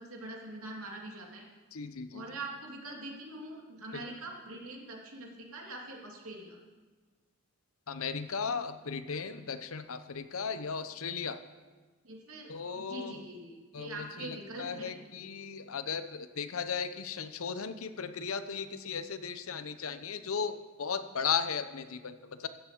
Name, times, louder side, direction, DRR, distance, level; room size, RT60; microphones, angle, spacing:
voice 1, 0.0-1.4 2.1-6.6 12.0-14.9, right 2 dB, 80° right, 0 dB, 2.6 m, -43 dB
voice 2, 1.7-2.2 3.9-4.1 7.9-11.4 12.5-13.2 13.7-22.5, left 6 dB, 75° left, 10 dB, 0.8 m, -36 dB
15.0 x 7.0 x 7.3 m, 1.4 s
head